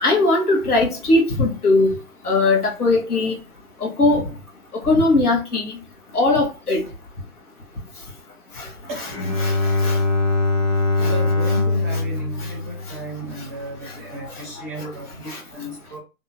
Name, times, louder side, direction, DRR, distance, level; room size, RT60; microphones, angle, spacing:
voice 1, 0.0-1.9 2.2-3.3 3.8-4.3 4.8-5.7 6.1-6.8 8.6-8.7 9.4-9.6 9.8-10.0 11.0-11.1 14.8-14.9 15.3-15.4, left 2 dB, 85° left, 1.3 m, -19 dB
Bowed string instrument, 9.1-13.6, left 3 dB, 30° left, 0.9 m, -22 dB
voice 2, 11.0-16.0, right 2 dB, 10° right, 0.5 m, -34 dB
2.7 x 2.3 x 2.8 m
figure-of-eight pair, 135°, 44 cm